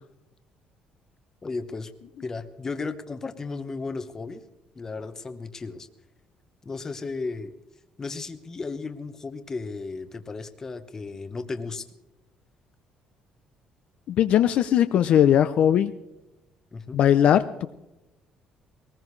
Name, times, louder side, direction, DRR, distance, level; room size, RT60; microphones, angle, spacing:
voice 1, 1.4-1.9 2.2-4.4 4.7-5.9 6.6-7.5 8.0-11.8 16.7-17.0, left 4 dB, 20° left, 9 dB, 1.0 m, -34 dB
voice 2, 14.1-15.9 16.9-17.4, left 10 dB, 50° left, 11 dB, 0.6 m, -19 dB
22.0 x 19.5 x 3.3 m, 0.95 s
cardioid pair, 175°, 3 cm